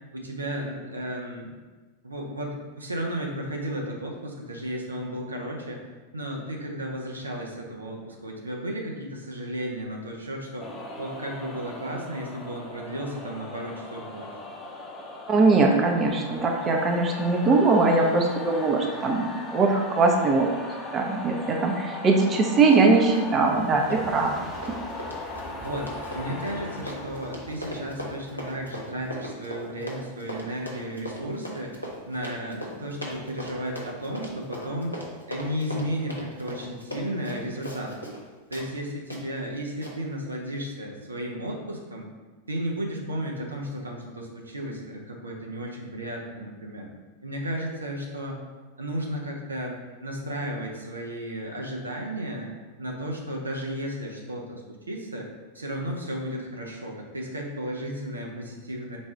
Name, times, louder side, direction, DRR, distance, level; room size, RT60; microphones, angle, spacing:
voice 1, 0.1-1.5 2.0-5.8 6.1-10.7 11.0-14.4 25.5-31.8 32.1-35.0 35.3-38.0 38.5-42.1 42.5-46.9 47.2-48.4 48.8-52.5 52.8-55.3 55.5-59.0, equal, 80° right, 0 dB, 0.6 m, -34 dB
sound 1, 10.6-29.1, left 2 dB, 20° left, 0.7 m, -39 dB
voice 2, 15.3-20.5 20.9-24.3 24.7-24.8, right 3 dB, 25° right, 1 dB, 0.5 m, -21 dB
Run, 22.6-22.9 23.1-38.2 38.5-38.7 39.1-39.2 39.8-39.9, equal, 85° left, 0.8 m, -38 dB
4.0 x 2.3 x 4.6 m, 1.3 s
figure-of-eight pair, 90°, 0 cm